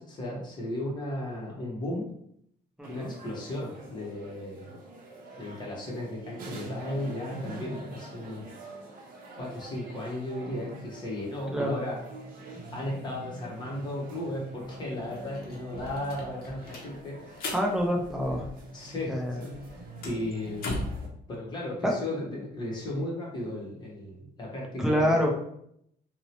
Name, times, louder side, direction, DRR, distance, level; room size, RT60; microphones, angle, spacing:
voice 1, 0.0-2.1 2.9-4.8 5.4-8.4 9.4-12.0 12.7-17.5 18.7-19.8 20.0-21.0 21.3-25.3, left 1 dB, 25° left, -3 dB, 0.7 m, -35 dB
voice 2, 2.8-3.1 11.5-11.8 17.5-18.5 19.1-19.4 21.8-21.9 24.8-25.3, equal, ahead, -1 dB, 0.4 m, -26 dB
sound 1, 2.8-21.1, right 2 dB, 55° right, 0.6 m, -45 dB
sound 2, 14.6-14.7 15.0-18.9 19.2-21.1, left 2 dB, 60° left, 0.6 m, -38 dB
2.6 x 2.0 x 2.8 m, 0.71 s
cardioid pair, 165°, 18 cm